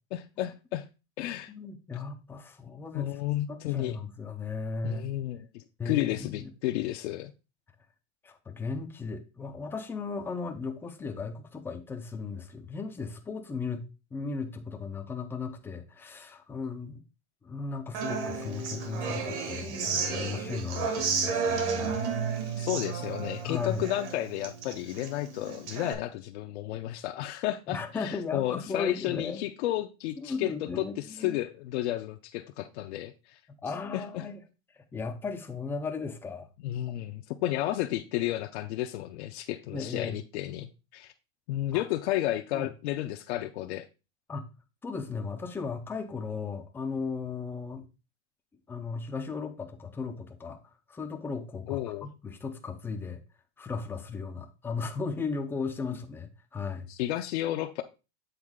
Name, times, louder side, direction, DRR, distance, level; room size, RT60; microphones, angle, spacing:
voice 1, 0.1-0.9 1.2-1.5 2.9-4.0 4.8-7.3 22.6-33.4 33.9-34.3 36.6-41.1 41.5-43.9 51.7-52.1 56.9-57.8, left 14 dB, 65° left, 0.6 m, -32 dB
voice 2, 1.5-3.1 3.5-5.1 5.8-6.5 8.2-13.9 14.1-17.0 17.4-22.7 23.4-23.8 27.7-29.4 30.2-31.4 33.6-34.3 34.9-36.5 39.7-40.2 41.7-41.8 42.5-42.7 44.3-44.4 44.8-47.9 48.7-50.6 50.9-53.2 53.6-56.9, left 4 dB, 5° left, 0.3 m, -36 dB
Human voice / Acoustic guitar, 17.9-25.9, right 5 dB, 70° right, 1.9 m, -32 dB
8.0 x 3.8 x 3.6 m
supercardioid pair, 150°, 35 cm